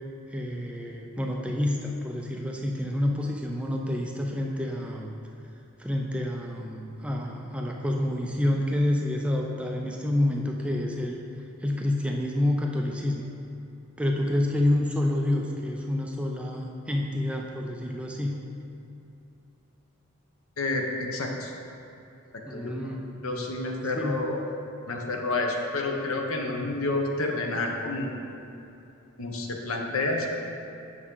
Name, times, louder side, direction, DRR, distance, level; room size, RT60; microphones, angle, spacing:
voice 1, 0.3-5.1 5.8-11.2 11.6-13.3 14.0-18.4 22.5-23.5 24.0-24.3, left 1 dB, 5° right, 0 dB, 0.4 m, -28 dB
voice 2, 20.6-21.5 22.3-22.9 23.2-24.5 24.9-28.2 29.2-30.3, left 2 dB, 70° left, 2 dB, 0.8 m, -29 dB
8.1 x 6.0 x 3.8 m, 2.8 s
head